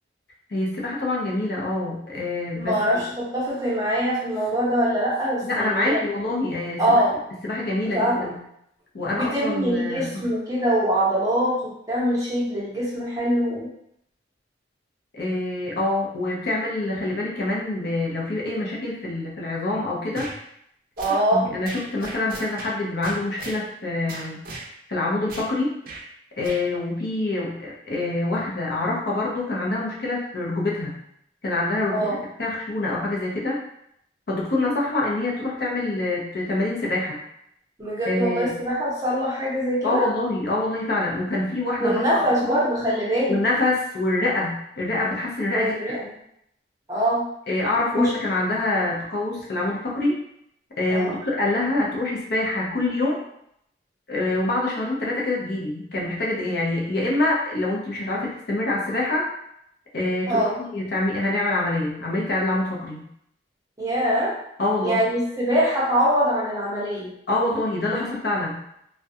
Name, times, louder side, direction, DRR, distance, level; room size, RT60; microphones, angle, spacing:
voice 1, 0.5-3.0 5.4-7.0 7.4-8.4 8.9-10.1 15.1-20.3 21.3-24.4 24.9-25.7 26.4-31.0 31.4-33.6 34.3-37.2 38.0-38.5 39.8-42.6 43.3-46.0 47.5-50.2 50.8-53.2 54.1-59.3 59.9-63.0 64.6-65.0 67.3-68.6, left 2 dB, 60° left, -4 dB, 0.6 m, -26 dB
voice 2, 2.5-6.0 6.8-7.2 7.9-8.3 9.1-13.7 21.0-21.5 31.9-32.2 37.8-40.1 41.8-43.4 45.5-46.1 46.9-47.2 47.9-48.1 50.9-51.1 60.3-60.5 63.8-64.3 64.8-67.1, equal, 20° right, -8 dB, 0.8 m, -23 dB
sound 1, 20.1-20.4 21.0-21.2 21.6-22.7 23.0-23.6 24.1-24.7 25.3-25.5 25.8-26.0 26.4-26.6, right 2 dB, 55° right, 0.5 m, -38 dB
2.3 x 2.2 x 2.6 m, 0.75 s
head